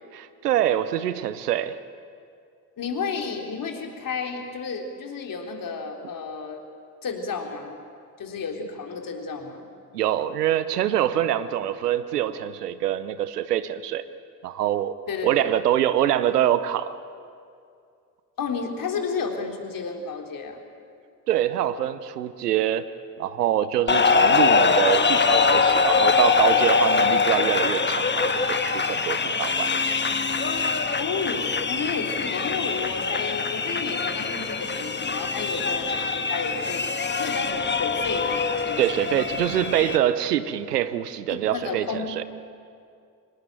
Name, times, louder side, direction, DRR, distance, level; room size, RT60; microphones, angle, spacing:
voice 1, 0.1-1.8 9.9-14.1 14.4-14.9 15.2-16.9 21.3-22.9 23.2-29.7 38.8-42.2, right 11 dB, 80° right, 14 dB, 0.9 m, -25 dB
voice 2, 2.8-6.6 7.0-7.8 8.2-9.7 15.1-15.5 18.4-20.6 31.0-36.9 37.2-39.1 41.3-42.2, left 5 dB, 45° left, 3 dB, 3.5 m, -32 dB
sound 1, 23.9-40.0, left 5 dB, 25° left, 1.5 m, -23 dB
24.5 x 19.5 x 9.1 m, 2.4 s
figure-of-eight pair, 45°, 46 cm